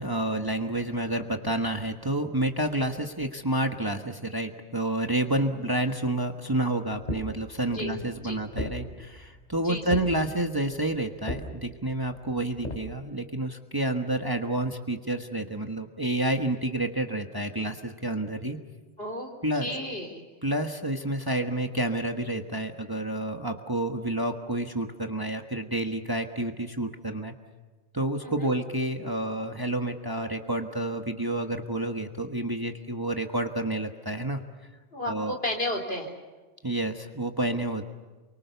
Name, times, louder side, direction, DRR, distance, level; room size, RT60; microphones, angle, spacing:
voice 1, 0.0-18.6 19.4-19.7 20.4-27.3 27.9-34.4 35.1-35.3 36.6-37.8, right 1 dB, 20° right, 4 dB, 1.3 m, -29 dB
voice 2, 5.3-5.7 7.7-8.0 8.2-8.4 9.6-10.0 19.0-20.2 28.2-28.5 34.9-36.1, left 1 dB, 60° left, 2 dB, 3.9 m, -34 dB
sound 1, 7.1-12.8, left 1 dB, 40° left, 3.3 m, -38 dB
29.0 x 24.0 x 7.0 m, 1.2 s
omnidirectional pair, 1.2 m